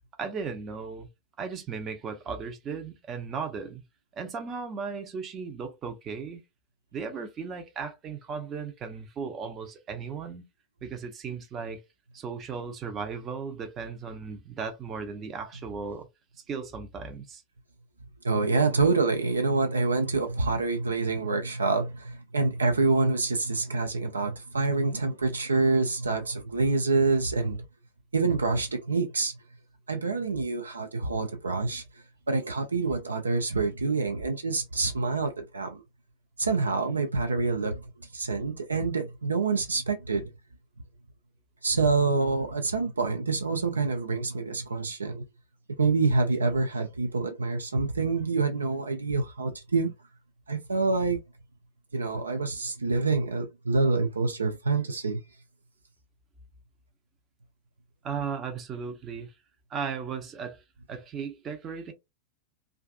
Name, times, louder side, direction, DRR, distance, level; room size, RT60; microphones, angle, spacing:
voice 1, 0.2-1.1 1.4-3.8 4.2-6.4 6.9-10.4 10.8-11.8 12.1-16.1 16.5-17.4 58.0-59.3 59.7-60.6 60.9-61.9, right 5 dB, 25° right, 0.6 m, -36 dB
voice 2, 18.2-27.7 28.1-29.4 29.9-35.8 36.4-40.3 41.6-45.2 45.8-49.9 50.5-51.2 51.9-55.2, right 3 dB, 75° right, 0.4 m, -27 dB
2.4 x 2.2 x 2.3 m
figure-of-eight pair, 90°, 0 cm